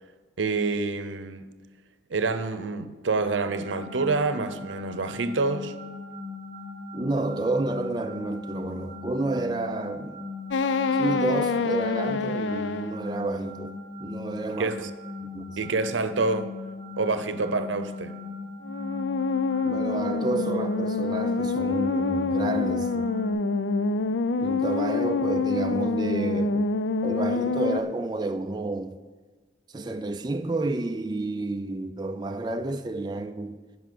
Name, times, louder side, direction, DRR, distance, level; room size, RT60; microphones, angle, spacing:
voice 1, 0.4-1.4 2.1-5.7 14.6-14.9 15.6-16.5 17.0-18.2, right 3 dB, 85° right, 0.7 m, -27 dB
sound 1, 3.5-23.3, left 3 dB, 20° left, 2.4 m, -38 dB
voice 2, 6.9-10.2 11.0-13.7 14.0-14.8 15.2-15.6 19.6-23.1 24.4-26.7 27.0-29.0 29.7-33.6, right 2 dB, 20° right, 0.4 m, -30 dB
sound 2, 10.5-13.0 18.6-27.8, left 4 dB, 80° left, 0.5 m, -26 dB
11.0 x 5.4 x 7.6 m
head